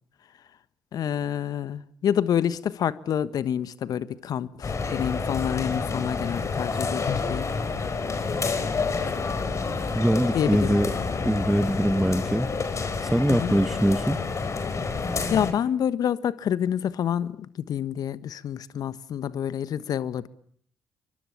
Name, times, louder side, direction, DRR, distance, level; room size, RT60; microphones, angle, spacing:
voice 1, 0.9-7.5 10.3-10.8 13.3-13.5 15.3-20.3, left 9 dB, 55° left, 1.4 m, -28 dB
sound 1, 4.6-15.5, left 4 dB, 40° left, 4.7 m, -29 dB
voice 2, 9.9-10.9 11.2-12.5 13.0-14.2, equal, 5° right, 1.2 m, -23 dB
28.5 x 24.0 x 8.6 m
hypercardioid pair, 45°, 8 cm